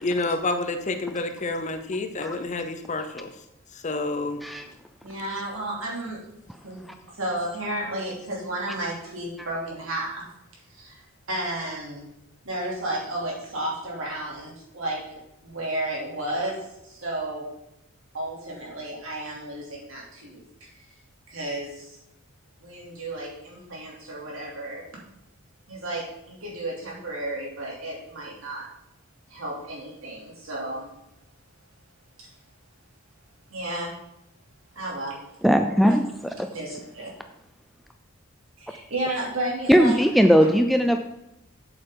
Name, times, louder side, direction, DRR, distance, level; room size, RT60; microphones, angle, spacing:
voice 1, 0.0-3.3 3.7-4.4, left 2 dB, 35° left, 7 dB, 0.6 m, -29 dB
voice 2, 5.0-6.2 6.6-10.2 10.7-11.0 11.3-12.1 12.4-15.0 15.4-16.6 16.8-17.5 18.1-20.7 21.3-22.0 22.6-24.8 25.7-28.7 29.3-30.9 32.2-32.3 33.5-33.9 34.7-35.2 36.5-37.1 38.6-40.0, right 1 dB, 65° right, -3 dB, 2.9 m, -32 dB
voice 3, 35.4-36.5 39.7-41.0, equal, ahead, 6 dB, 0.3 m, -19 dB
7.9 x 7.8 x 3.8 m, 0.86 s
head